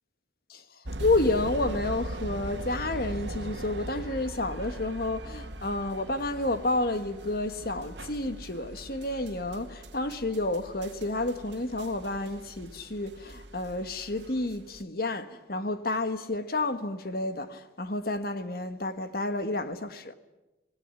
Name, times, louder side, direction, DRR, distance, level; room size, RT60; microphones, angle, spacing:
sound 1, 0.8-14.8, right 1 dB, 85° right, 1.8 m, -40 dB
voice 1, 1.0-20.1, left 2 dB, 55° left, 1.7 m, -30 dB
26.0 x 19.0 x 9.8 m
head